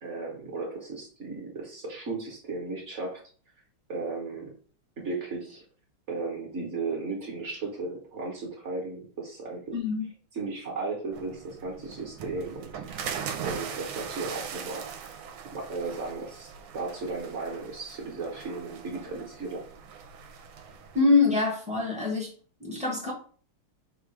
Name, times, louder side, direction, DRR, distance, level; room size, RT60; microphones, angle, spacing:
voice 1, 0.0-3.2 3.9-4.5 5.0-5.6 6.1-9.8 10.3-13.2 13.4-14.9 15.4-19.7, right 3 dB, 45° right, -1 dB, 1.0 m, -35 dB
voice 2, 9.7-10.1 20.9-22.3 22.6-23.1, left 4 dB, 5° right, -4 dB, 0.6 m, -24 dB
sound 1, 11.1-21.0, right 7 dB, 85° right, 1.4 m, -40 dB
3.7 x 2.4 x 4.6 m, 0.43 s
omnidirectional pair, 2.3 m